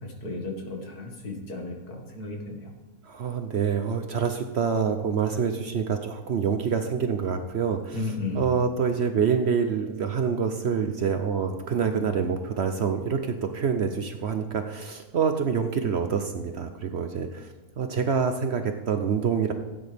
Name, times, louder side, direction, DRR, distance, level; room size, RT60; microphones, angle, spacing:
voice 1, 0.0-2.7 7.9-8.5, left 2 dB, 75° left, 1 dB, 2.4 m, -34 dB
voice 2, 3.1-8.0 8.4-17.5 17.8-19.5, right 6 dB, 55° right, 6 dB, 0.8 m, -26 dB
16.0 x 9.2 x 3.4 m, 1.2 s
omnidirectional pair, 1.7 m